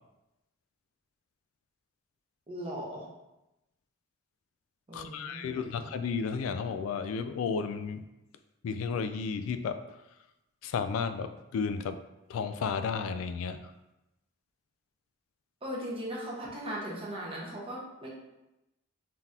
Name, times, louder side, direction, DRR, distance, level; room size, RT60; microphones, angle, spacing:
voice 1, 2.5-3.0 4.9-5.8 15.6-18.1, equal, 25° right, -4 dB, 0.9 m, -38 dB
voice 2, 4.9-8.0 8.6-9.8 10.6-12.0 12.3-13.6, left 5 dB, 85° left, 10 dB, 0.3 m, -33 dB
3.8 x 2.8 x 3.6 m, 0.95 s
head